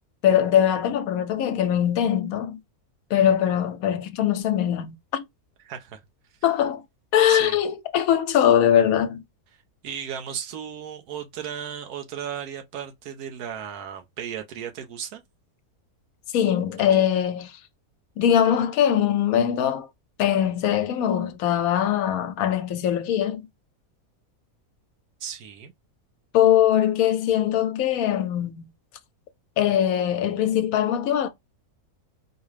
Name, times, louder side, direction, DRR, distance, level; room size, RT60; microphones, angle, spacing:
voice 1, 0.2-2.6 3.1-5.2 6.4-6.8 7.1-9.2 16.3-17.6 18.2-19.9 20.2-23.5 26.3-28.6 29.6-31.3, left 10 dB, 75° left, 1.0 m, -21 dB
voice 2, 5.6-6.0 7.3-7.6 9.8-15.2 25.2-25.7, right 8 dB, 90° right, 1.2 m, -35 dB
4.7 x 2.1 x 3.2 m
omnidirectional pair, 1.6 m